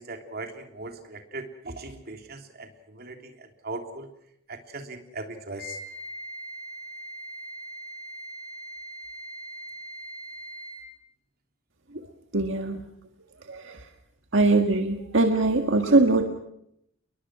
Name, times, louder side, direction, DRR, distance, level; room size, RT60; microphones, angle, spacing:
voice 1, 0.0-4.1 4.5-5.8, right 2 dB, 50° right, 5 dB, 3.3 m, -39 dB
Wind instrument woodwind instrument, 5.6-10.9, right 1 dB, 60° left, 7.5 m, -40 dB
voice 2, 12.3-12.8 13.5-13.9 14.3-16.3, right 2 dB, 70° right, 4 dB, 1.8 m, -22 dB
29.0 x 22.0 x 6.2 m, 0.75 s
head